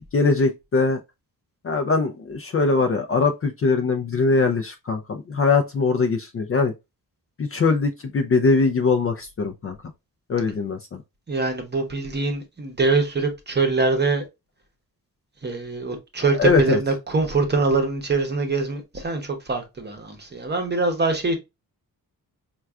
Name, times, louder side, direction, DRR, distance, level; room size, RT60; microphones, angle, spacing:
voice 1, 0.1-1.0 1.6-6.7 7.4-9.8 10.3-11.0 16.4-16.8, left 4 dB, 40° left, 0.4 m, -21 dB
voice 2, 11.3-14.2 15.4-21.4, right 3 dB, 30° right, 0.8 m, -23 dB
4.5 x 2.3 x 2.3 m
wide cardioid pair, 155°, 37 cm